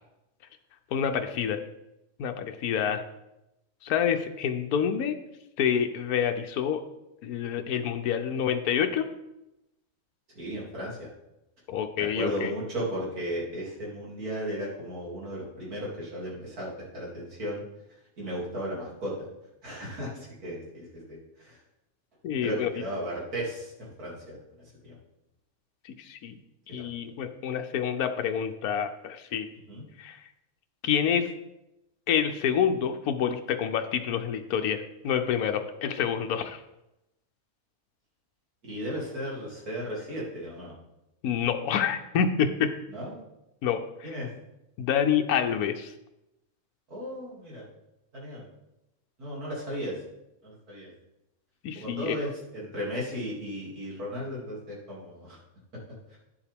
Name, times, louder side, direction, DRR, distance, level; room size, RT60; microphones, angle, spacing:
voice 1, 0.9-1.6 2.2-3.0 3.8-5.2 5.6-6.8 7.2-9.1 11.7-12.5 22.2-22.7 25.8-26.4 26.7-29.5 30.0-30.2 30.8-31.3 32.1-36.6 41.2-42.7 43.6-44.2 44.8-45.9 51.6-52.2, left 8 dB, 80° left, 6 dB, 1.2 m, -27 dB
voice 2, 10.3-11.1 12.0-17.6 18.2-19.3 19.6-21.6 22.4-24.4 24.8-25.0 26.7-26.9 29.7-29.8 38.6-40.7 42.9-43.2 44.0-44.3 46.9-47.6 48.1-48.5 49.2-50.0 50.4-50.9 51.7-55.4 56.1-56.2, equal, 85° right, -6 dB, 3.2 m, -35 dB
10.5 x 7.2 x 3.5 m, 0.90 s
omnidirectional pair, 1.6 m